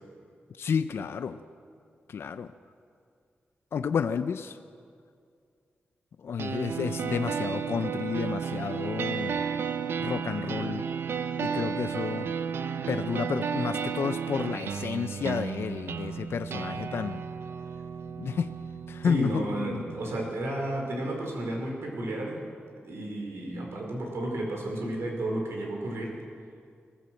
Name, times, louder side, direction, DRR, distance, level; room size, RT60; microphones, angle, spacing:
voice 1, 0.6-1.4 2.1-2.5 3.7-4.6 6.2-9.4 10.0-10.8 11.4-12.3 12.9-17.2 18.2-18.5 18.9-19.8, left 6 dB, 70° left, 10 dB, 0.6 m, -31 dB
sound 1, 6.4-20.4, right 6 dB, 70° right, 0.8 m, -33 dB
voice 2, 19.0-22.4 22.8-26.1, right 1 dB, 85° right, 0 dB, 4.9 m, -32 dB
21.0 x 16.0 x 7.8 m, 2.3 s
wide cardioid pair, 115°, 4 cm